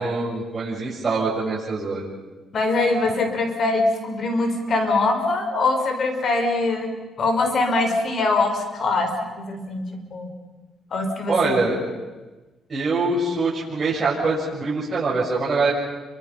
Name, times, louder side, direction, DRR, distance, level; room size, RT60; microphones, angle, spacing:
voice 1, 0.0-2.1 11.3-11.8 12.7-15.7, right 3 dB, 35° right, -8 dB, 7.4 m, -23 dB
voice 2, 2.5-10.3 10.9-11.6, left 3 dB, 55° left, 5 dB, 5.4 m, -23 dB
30.0 x 25.0 x 5.9 m, 1.2 s
cardioid pair, 90°, 0 cm